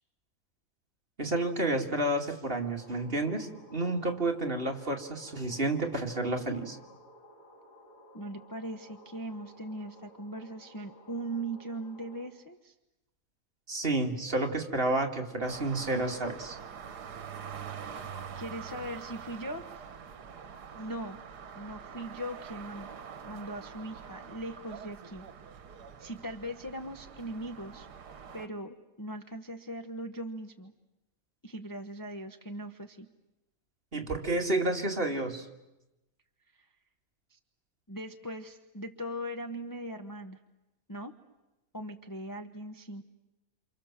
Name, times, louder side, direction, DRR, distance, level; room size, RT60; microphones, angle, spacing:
voice 1, 1.2-6.8 13.7-16.6 33.9-35.5, right 2 dB, 35° right, 2 dB, 2.6 m, -30 dB
sound 1, 2.8-12.2, left 1 dB, 75° left, 8.6 m, -55 dB
voice 2, 8.1-12.7 18.4-19.8 20.7-21.2 21.5-22.9 23.2-25.3 26.0-27.9 28.3-30.7 31.4-33.1 36.5-36.7 37.3-37.4 37.9-40.4 40.9-41.1 41.7-43.0, right 1 dB, 15° left, 5 dB, 1.0 m, -40 dB
sound 2, 15.4-28.5, right 7 dB, 75° right, 1.8 m, -45 dB
29.0 x 27.5 x 7.4 m, 0.98 s
omnidirectional pair, 1.7 m